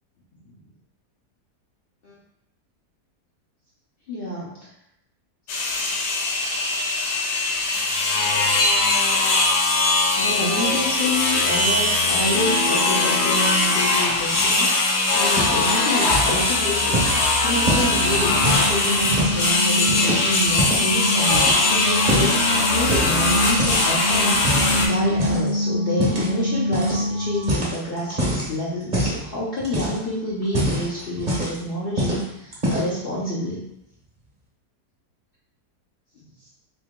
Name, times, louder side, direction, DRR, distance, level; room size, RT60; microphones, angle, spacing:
voice 1, 4.1-4.5 10.2-17.0 17.4-24.4 24.8-33.6, left 1 dB, 55° left, -6 dB, 0.6 m, -28 dB
sound 1, 5.5-24.9, left 2 dB, 85° left, 1.2 m, -21 dB
sound 2, 15.4-15.8 16.0-16.4 16.9-19.5 19.9-20.9 21.3-22.4 22.9-23.3 23.6-25.5 26.0-26.3 26.7-27.0 27.3-28.5 28.9-29.2 29.6-30.1 30.4-31.6 32.0-32.2 32.5-33.0, right 1 dB, 35° right, 0.8 m, -25 dB
sound 3, 18.0-27.7, left 1 dB, 80° right, 1.2 m, -27 dB
3.0 x 2.7 x 3.5 m, 0.79 s
omnidirectional pair, 1.7 m